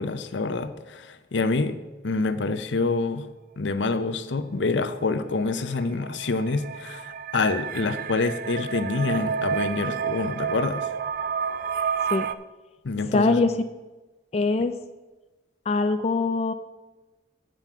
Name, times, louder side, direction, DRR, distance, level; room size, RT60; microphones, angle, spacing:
voice 1, 0.0-1.8 2.0-3.3 3.6-10.9 12.8-13.4, left 3 dB, 75° left, 11 dB, 0.6 m, -27 dB
sound 1, 5.2-12.4, right 7 dB, 50° right, 0.3 m, -30 dB
voice 2, 13.1-13.6 14.3-14.7 15.7-16.5, left 3 dB, 35° left, 8 dB, 0.3 m, -22 dB
7.6 x 5.2 x 7.2 m, 1.1 s
head